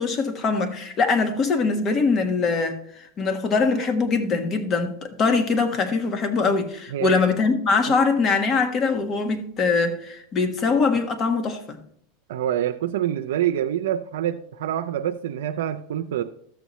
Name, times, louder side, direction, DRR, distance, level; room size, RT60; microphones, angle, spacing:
voice 1, 0.0-11.8, left 4 dB, 35° left, 1.3 m, -22 dB
voice 2, 6.9-7.2 7.9-8.0 12.3-16.2, right 11 dB, 80° right, 0.5 m, -26 dB
13.0 x 6.9 x 3.1 m
supercardioid pair, 125°, 0 cm